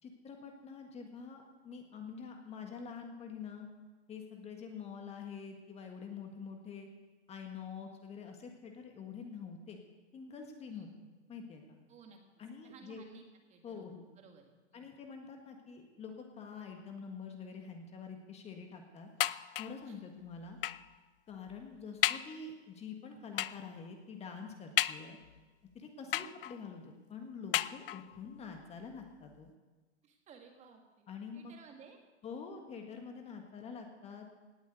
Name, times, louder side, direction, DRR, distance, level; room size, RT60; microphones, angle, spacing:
voice 1, 0.0-3.7 4.1-6.9 7.3-9.8 10.1-10.9 11.3-11.8 12.4-13.0 13.6-14.1 14.7-19.1 19.5-20.6 21.3-25.2 25.7-29.5 31.1-31.5 32.2-34.3, left 5 dB, 15° left, 4 dB, 1.6 m, -46 dB
voice 2, 11.9-12.2 12.6-13.9 14.2-14.9 19.8-20.0 26.0-26.3 30.0-31.1 31.3-32.0, right 5 dB, 20° right, 4 dB, 1.8 m, -57 dB
sound 1, 19.2-19.9 20.6-20.9 21.5-21.6 22.0-22.4 23.4-23.7 24.8-25.4 26.1-26.7 27.5-28.2 29.0-29.1 29.4-29.5, left 13 dB, 50° left, 0.5 m, -34 dB
18.0 x 7.2 x 8.2 m, 1.2 s
hypercardioid pair, 130°, 36 cm